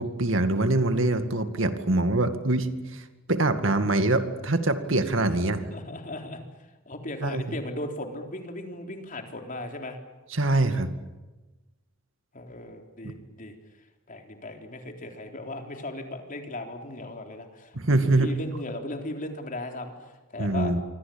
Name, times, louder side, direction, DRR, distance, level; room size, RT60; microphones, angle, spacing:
voice 1, 0.0-5.6 7.2-7.6 10.3-10.9 13.0-13.1 17.7-18.3 20.4-20.8, right 2 dB, 75° right, 8 dB, 2.2 m, -24 dB
voice 2, 5.7-6.4 6.9-10.0 12.3-13.5 14.1-19.9 20.3-20.7, left 1 dB, 45° left, 4 dB, 3.8 m, -37 dB
28.0 x 24.0 x 8.8 m, 1.1 s
head